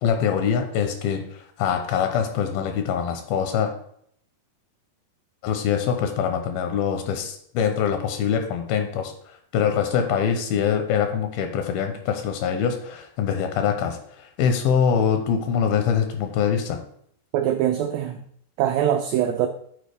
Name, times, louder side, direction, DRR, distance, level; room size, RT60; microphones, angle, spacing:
voice 1, 0.0-3.7 5.4-9.1 9.5-14.0 14.4-16.8, left 7 dB, 80° left, 6 dB, 2.4 m, -24 dB
voice 2, 17.3-18.2 18.6-19.5, right 10 dB, 90° right, 5 dB, 1.9 m, -22 dB
9.2 x 4.3 x 3.3 m, 0.66 s
omnidirectional pair, 4.5 m